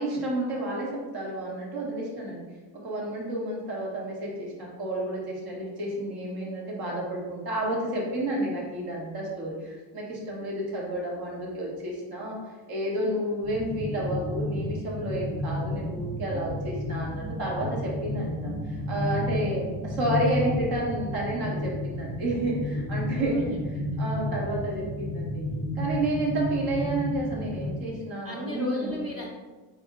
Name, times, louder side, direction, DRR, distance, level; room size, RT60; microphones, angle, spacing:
voice 1, 0.0-12.4 12.7-23.6 24.0-25.4 25.7-29.1, right 1 dB, 50° right, -3 dB, 1.1 m, -31 dB
sound 1, 13.4-27.7, left 1 dB, 10° right, 0.6 m, -32 dB
voice 2, 23.1-24.0 28.2-29.3, left 1 dB, 30° right, -4 dB, 1.0 m, -36 dB
5.2 x 2.1 x 3.6 m, 1.2 s
cardioid pair, 145°, 48 cm